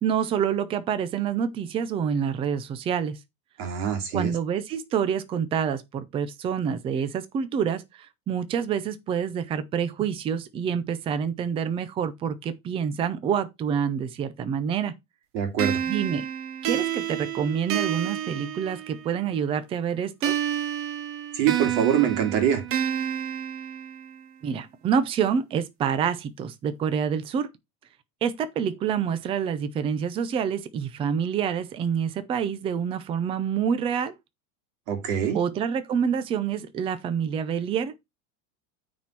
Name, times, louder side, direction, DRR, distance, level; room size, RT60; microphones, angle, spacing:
voice 1, 0.0-3.2 4.1-14.9 15.8-16.3 16.6-20.3 24.4-27.5 28.2-34.1 35.3-38.0, right 7 dB, 15° right, 0.4 m, -27 dB
voice 2, 3.6-4.3 15.3-15.8 21.3-22.6 34.9-35.4, right 9 dB, 55° right, 2.8 m, -24 dB
sound 1, 15.6-19.2 20.2-24.2, right 10 dB, 30° right, 0.8 m, -29 dB
9.3 x 4.3 x 4.5 m
supercardioid pair, 165°, 45 cm